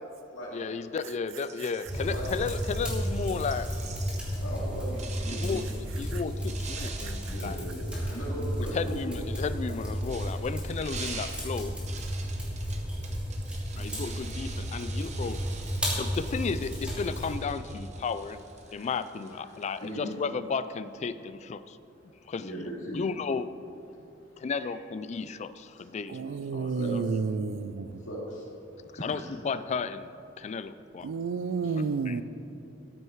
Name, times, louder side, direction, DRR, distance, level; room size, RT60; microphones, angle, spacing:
voice 1, 0.5-3.7 5.3-7.6 8.7-11.7 13.8-15.4 16.0-21.8 22.3-22.5 22.9-23.5 24.4-27.0 29.0-30.1 30.4-31.1 31.7-32.2, left 5 dB, 35° left, 13 dB, 0.3 m, -34 dB
sound 1, 1.4-4.4 5.0-5.8 6.4-8.5 9.6-20.0, right 5 dB, 35° right, 0.9 m, -46 dB
sound 2, 1.8-17.4, equal, 5° right, 2.7 m, -33 dB
voice 2, 4.4-5.6 7.2-7.8 8.1-8.8 18.7-18.9 19.5-20.1 22.4-23.0 26.7-27.2 28.1-28.4 29.0-29.1 31.3-31.9, right 1 dB, 75° left, -4 dB, 2.6 m, -38 dB
voice 3, 26.1-27.9 31.0-32.2, right 5 dB, 80° right, 14 dB, 0.4 m, -30 dB
13.5 x 6.5 x 4.6 m, 2.7 s
head